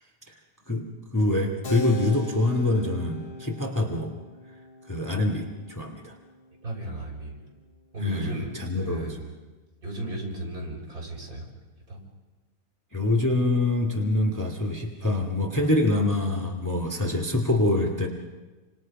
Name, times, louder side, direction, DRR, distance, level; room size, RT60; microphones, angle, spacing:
voice 1, 0.7-4.1 4.9-6.1 8.0-9.1 12.9-18.1, left 2 dB, 10° left, 1 dB, 2.2 m, -25 dB
Keyboard (musical), 1.6-7.8, left 2 dB, 80° left, 2.4 m, -41 dB
voice 2, 6.6-7.4 7.9-9.3 9.8-11.5 11.9-12.0, right 1 dB, 60° right, -2 dB, 6.8 m, -35 dB
29.0 x 26.5 x 5.4 m, 1.3 s
omnidirectional pair, 1.7 m